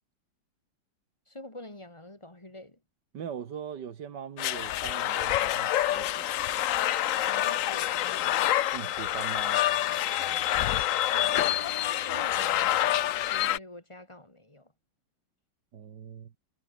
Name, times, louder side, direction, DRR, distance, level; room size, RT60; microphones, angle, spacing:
voice 1, 1.3-2.8 7.3-8.7 11.0-14.7, left 1 dB, 15° left, 3.0 m, -46 dB
voice 2, 3.1-6.4 8.7-9.6 15.7-16.3, right 8 dB, 60° right, 1.9 m, -41 dB
sound 1, 4.4-13.6, left 13 dB, 85° left, 0.7 m, -27 dB
omnidirectional pair, 2.1 m